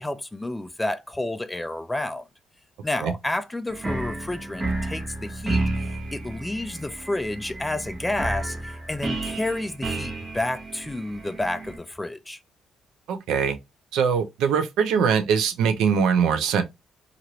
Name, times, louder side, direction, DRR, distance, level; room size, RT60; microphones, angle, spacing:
voice 1, 0.0-2.2 2.8-12.4, left 2 dB, 10° left, 0.4 m, -30 dB
sound 1, 3.7-11.8, right 2 dB, 30° right, 0.9 m, -31 dB
voice 2, 13.1-13.6 13.9-16.6, right 6 dB, 85° right, 0.5 m, -22 dB
3.0 x 2.5 x 2.9 m
cardioid pair, 90°, 0 cm